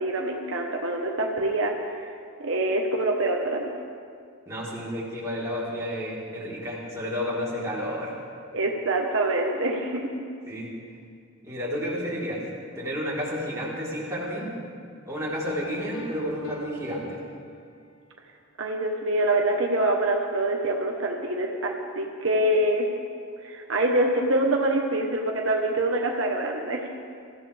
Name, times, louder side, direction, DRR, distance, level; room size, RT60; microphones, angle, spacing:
voice 1, 0.0-2.1 2.4-3.7 8.5-10.1 18.6-22.8 23.4-26.9, right 1 dB, 65° right, 0 dB, 1.2 m, -25 dB
voice 2, 4.5-8.1 10.5-10.7 11.4-12.4 12.8-14.5 15.1-17.2, equal, 15° right, -8 dB, 4.0 m, -31 dB
Piano, 15.4-17.9, right 4 dB, 70° left, 1.9 m, -42 dB
24.0 x 14.5 x 3.5 m, 2.2 s
head